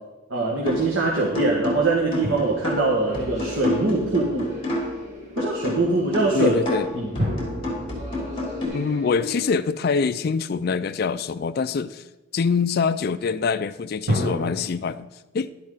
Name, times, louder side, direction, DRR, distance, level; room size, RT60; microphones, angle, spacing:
voice 1, 0.3-4.5 5.4-6.5 6.9-7.1, right 3 dB, 85° right, -3 dB, 1.8 m, -23 dB
sound 1, 0.7-1.0 1.3-5.0 5.4-8.7, left 2 dB, 30° left, 3.4 m, -29 dB
sound 2, 2.2-4.2 7.2-10.5 14.1-14.5, equal, 55° right, 2.4 m, -31 dB
sound 3, 2.4-9.5, left 1 dB, 35° right, 2.3 m, -39 dB
voice 2, 6.3-6.9 8.7-12.0 12.3-15.1 15.3-15.5, left 5 dB, 50° left, 11 dB, 0.4 m, -24 dB
11.5 x 11.0 x 3.9 m, 1.1 s
head